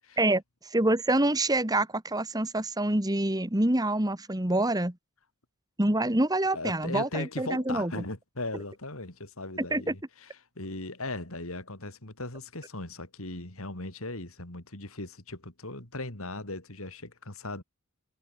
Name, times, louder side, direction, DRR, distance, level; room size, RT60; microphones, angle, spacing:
voice 1, 0.7-4.9 5.8-8.0 9.7-9.9, right 1 dB, 15° right, 1.8 m, -26 dB
voice 2, 6.5-17.6, left 2 dB, 70° left, 4.3 m, -38 dB
head